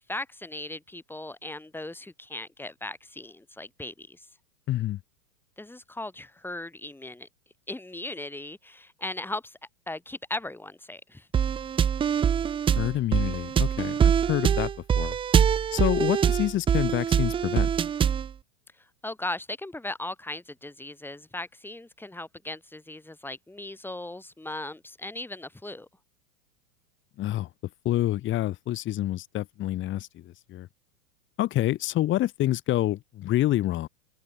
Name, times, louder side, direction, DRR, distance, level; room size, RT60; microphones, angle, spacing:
voice 1, 0.0-4.3 5.6-7.3 7.7-9.6 9.9-11.3 18.8-25.9, left 2 dB, 5° left, 7.1 m, -38 dB
voice 2, 4.7-5.0 12.8-15.2 15.7-17.7 27.2-27.5 27.8-30.7 31.4-33.9, left 14 dB, 25° left, 1.5 m, -27 dB
sound 1, 11.3-18.3, right 8 dB, 10° right, 0.7 m, -24 dB
open air
hypercardioid pair, 130°, 47 cm